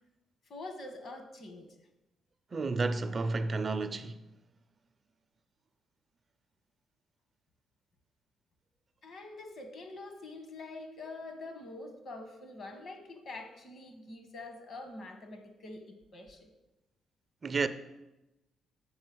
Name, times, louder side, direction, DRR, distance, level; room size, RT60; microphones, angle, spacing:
voice 1, 0.5-1.7 9.0-16.5, left 2 dB, 55° left, 1.5 m, -45 dB
voice 2, 2.5-4.1 17.4-17.7, right 3 dB, 35° right, 0.5 m, -31 dB
7.7 x 5.5 x 6.3 m
cardioid pair, 90°, 0 cm